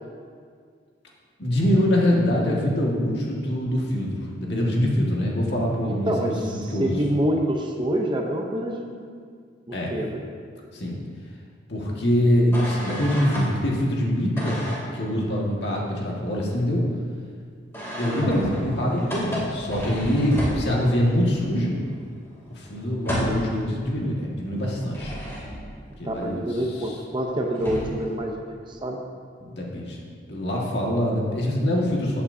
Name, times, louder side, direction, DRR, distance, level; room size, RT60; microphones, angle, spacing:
voice 1, 1.4-6.3 6.7-7.0 9.7-9.9 10.7-11.0 11.7-14.6 14.9-16.8 18.0-21.8 22.5-25.2 26.0-26.5 29.4-30.0 30.3-32.2, equal, 65° left, -3 dB, 1.8 m, -24 dB
voice 2, 5.9-9.1 9.7-10.2 18.0-18.3 26.0-29.0, right 1 dB, 25° right, 1 dB, 0.8 m, -27 dB
sound 1, 12.5-13.5 14.4-14.9 17.7-21.1 21.5-21.6 21.9-23.6 24.6-25.8 27.2-27.3 27.5-28.1, equal, 15° left, 2.7 m, -32 dB
14.5 x 8.6 x 2.7 m, 2.1 s
head